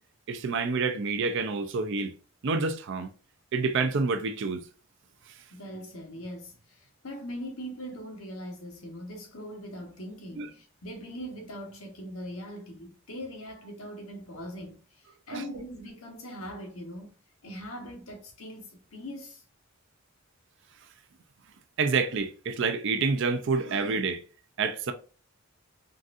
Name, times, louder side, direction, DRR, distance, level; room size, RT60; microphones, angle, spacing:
voice 1, 0.3-2.1 2.4-3.1 3.5-4.6 10.4-10.5 15.3-15.4 21.8-24.2 24.6-24.9, right 4 dB, 55° right, 0.4 m, -28 dB
voice 2, 5.5-17.1 17.4-19.4, equal, 75° left, 1.1 m, -41 dB
3.9 x 2.5 x 2.4 m
head